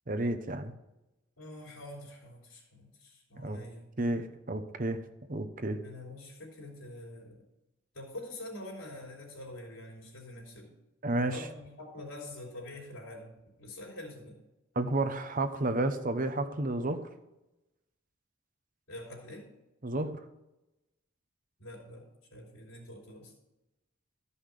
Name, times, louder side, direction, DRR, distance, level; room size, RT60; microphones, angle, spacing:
voice 1, 0.1-0.7 3.4-3.6 4.0-5.0 5.3-5.8 11.0-11.3 14.7-17.1 19.8-20.2, right 2 dB, 40° right, 9 dB, 0.9 m, -31 dB
voice 2, 1.4-3.9 5.8-7.4 7.9-10.7 11.3-14.4 18.9-19.4 21.6-23.3, left 1 dB, 85° left, -3 dB, 3.3 m, -45 dB
13.5 x 5.6 x 6.7 m, 0.95 s
head